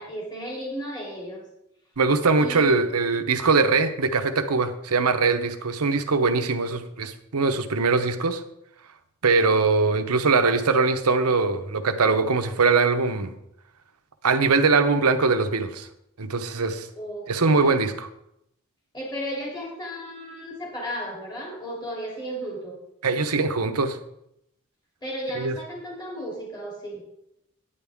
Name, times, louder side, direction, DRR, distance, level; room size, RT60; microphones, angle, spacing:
voice 1, 0.0-1.4 2.4-2.9 16.9-17.8 18.9-22.8 25.0-27.0, equal, 20° left, -4 dB, 3.0 m, -34 dB
voice 2, 2.0-8.4 9.2-13.3 14.2-15.9 16.2-16.9 17.3-18.1 23.0-24.0 25.4-25.5, right 4 dB, 90° right, 9 dB, 0.9 m, -22 dB
9.9 x 9.8 x 3.6 m, 0.80 s
head